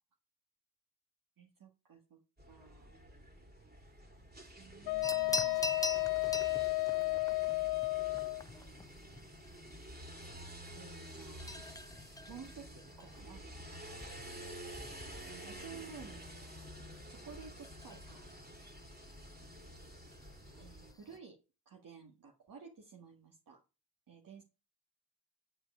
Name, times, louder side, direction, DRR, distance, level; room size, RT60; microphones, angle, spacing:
voice 1, 1.4-2.2 2.5-2.9 4.6-5.6 10.8-11.5 12.3-13.4 15.2-16.2 16.8-18.2 20.6-21.4 21.6-23.6 24.1-24.4, right 6 dB, 55° right, 2 dB, 1.8 m, -53 dB
sound 1, 2.4-20.9, right 1 dB, 25° right, 2.9 m, -50 dB
Wind instrument woodwind instrument, 4.9-8.4, left 21 dB, 80° left, 0.5 m, -33 dB
sound 2, 5.0-21.2, left 2 dB, 10° left, 0.6 m, -46 dB
9.9 x 4.9 x 5.6 m, 0.31 s
cardioid pair, 60°, 39 cm